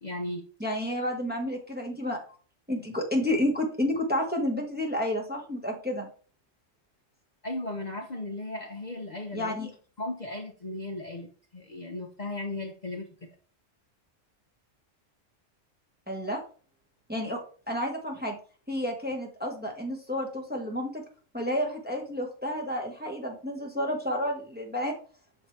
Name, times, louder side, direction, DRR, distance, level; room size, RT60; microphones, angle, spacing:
voice 1, 0.0-0.4 7.4-9.6 10.0-13.1, left 2 dB, 40° left, 2 dB, 0.7 m, -36 dB
voice 2, 0.6-2.2 2.7-6.1 9.3-9.7 16.1-16.4 17.1-17.4 17.7-18.4 18.7-21.0 21.3-24.9, left 1 dB, 10° right, 1 dB, 0.9 m, -30 dB
6.3 x 4.8 x 3.2 m, 0.40 s
omnidirectional pair, 1.3 m